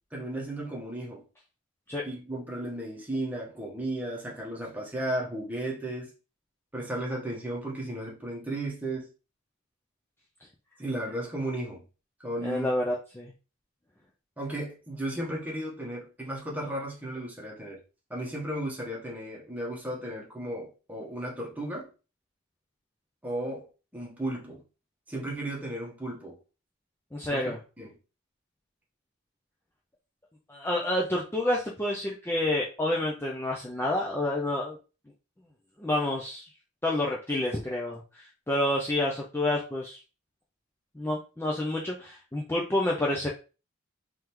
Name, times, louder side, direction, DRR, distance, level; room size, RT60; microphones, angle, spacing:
voice 1, 0.1-1.2 2.0-6.1 6.7-9.1 10.8-11.8 12.2-12.7 14.4-17.8 18.1-21.9 23.2-24.6 25.1-26.4 27.3-27.9, right 1 dB, 10° right, 1.2 m, -35 dB
voice 2, 12.4-13.3 27.1-27.6 30.5-34.8 35.8-36.5 36.8-40.0 41.0-43.3, left 1 dB, 10° left, 0.5 m, -29 dB
3.7 x 3.3 x 3.0 m
head